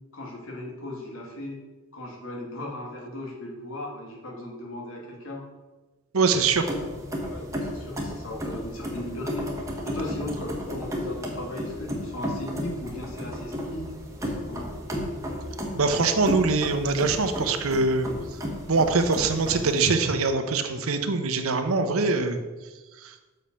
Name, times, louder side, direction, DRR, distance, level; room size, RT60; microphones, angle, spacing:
voice 1, 0.1-1.6 1.9-5.4 6.2-6.4 7.2-9.5 9.8-13.9 14.2-14.7, left 1 dB, 70° left, -1 dB, 1.6 m, -37 dB
voice 2, 6.1-6.7 15.0-15.1 15.7-18.1 18.7-22.4 23.0-23.1, right 4 dB, 80° right, 8 dB, 0.8 m, -23 dB
sound 1, 6.5-19.9, equal, 15° right, 1.2 m, -34 dB
6.7 x 5.1 x 5.6 m, 1.2 s
head